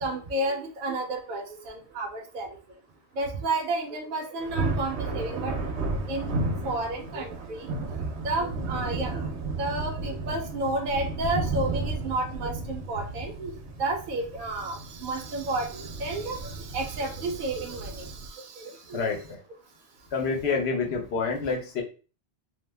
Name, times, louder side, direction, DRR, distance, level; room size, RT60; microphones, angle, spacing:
voice 1, 0.0-2.5 3.2-5.5 6.1-7.7 8.2-9.2 9.6-13.5 13.8-19.0, right 2 dB, 60° right, 2 dB, 0.7 m, -31 dB
Thunder, 4.4-18.3, right 3 dB, 90° right, 0.9 m, -33 dB
voice 2, 18.9-19.4 20.1-21.8, left 4 dB, 75° left, 2 dB, 1.0 m, -28 dB
2.9 x 2.1 x 3.2 m, 0.36 s
omnidirectional pair, 1.1 m